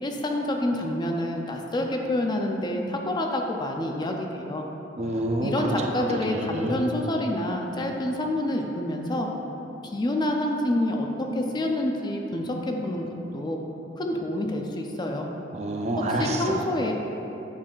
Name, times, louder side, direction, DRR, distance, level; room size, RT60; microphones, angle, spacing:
voice 1, 0.0-4.7 5.4-9.3 9.8-13.6 14.0-15.3 16.1-16.9, left 1 dB, 25° left, 2 dB, 0.4 m, -28 dB
voice 2, 5.0-5.9 6.2-6.9 15.5-16.6, right 1 dB, 35° right, 1 dB, 0.5 m, -28 dB
8.7 x 5.4 x 2.4 m, 2.9 s
head